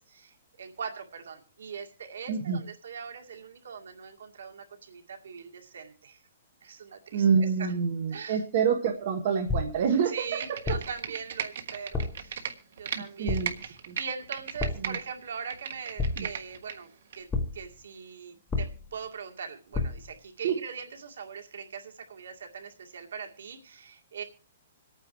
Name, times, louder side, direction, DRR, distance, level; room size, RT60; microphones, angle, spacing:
voice 1, 0.1-6.2 6.6-7.7 8.1-8.4 10.1-12.5 12.7-24.2, right 6 dB, 85° right, 4 dB, 2.2 m, -41 dB
voice 2, 2.3-2.6 7.1-10.8 12.9-13.5 13.9-14.0 14.8-15.0 16.2-16.3 20.4-20.6, right 6 dB, 40° right, 5 dB, 1.4 m, -27 dB
sound 1, 9.5-9.9 10.7-11.1 11.9-12.3 13.3-13.7 14.6-15.0 16.0-16.5 17.3-17.8 18.5-19.0 19.7-20.2, left 3 dB, 5° left, 1.2 m, -31 dB
Computer keyboard, 10.2-13.0 13.3-15.0 15.3-16.7 17.1-17.2, right 8 dB, 60° right, 1.4 m, -36 dB
26.5 x 9.1 x 3.2 m, 0.35 s
hypercardioid pair, 175°, 0 cm